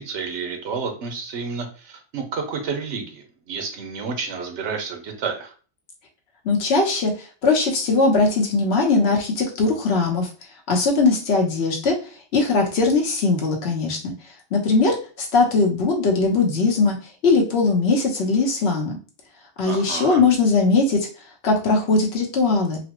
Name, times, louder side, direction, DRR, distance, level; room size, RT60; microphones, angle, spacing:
voice 1, 0.0-5.5 19.7-20.2, right 5 dB, 75° right, 4 dB, 1.1 m, -30 dB
voice 2, 6.4-7.1 7.4-10.3 10.7-11.9 12.3-14.1 14.5-17.0 17.2-19.0 19.6-21.1 21.4-22.8, left 3 dB, 65° left, 1 dB, 1.1 m, -20 dB
4.0 x 2.1 x 2.9 m, 0.38 s
omnidirectional pair, 1.2 m